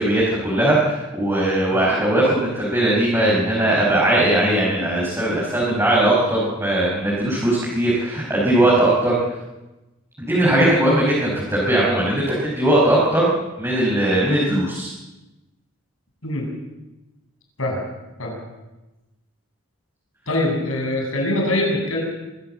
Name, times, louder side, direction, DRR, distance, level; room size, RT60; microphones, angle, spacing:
voice 1, 0.0-9.2 10.2-13.3 13.6-14.9, right 1 dB, 10° right, -6 dB, 5.1 m, -19 dB
voice 2, 20.3-22.0, left 1 dB, 70° left, 1 dB, 7.1 m, -23 dB
23.5 x 15.0 x 7.9 m, 1.0 s
head